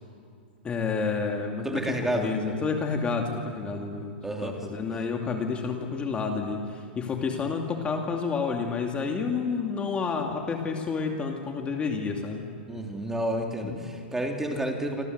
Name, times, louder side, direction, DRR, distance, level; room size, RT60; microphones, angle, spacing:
voice 1, 0.6-4.1 4.4-12.4 13.6-13.8, left 5 dB, 20° left, 2 dB, 2.6 m, -30 dB
voice 2, 1.6-2.3 4.2-4.7 12.7-15.0, right 1 dB, 5° right, 2 dB, 3.3 m, -30 dB
27.0 x 26.5 x 8.1 m, 2.4 s
hypercardioid pair, 130°, 6 cm